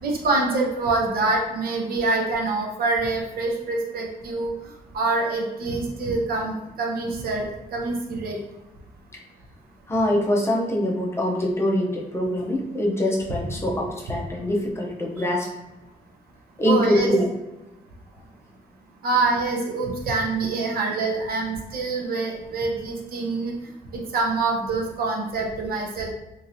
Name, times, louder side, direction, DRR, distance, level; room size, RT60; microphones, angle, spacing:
voice 1, 0.0-4.5 4.9-8.4 16.7-17.1 19.0-23.5 23.9-26.1, right 3 dB, 75° right, 0 dB, 0.7 m, -25 dB
voice 2, 9.9-15.5 16.6-17.3, left 1 dB, 15° left, -2 dB, 0.5 m, -24 dB
3.0 x 2.7 x 2.6 m, 0.98 s
wide cardioid pair, 145°, 15 cm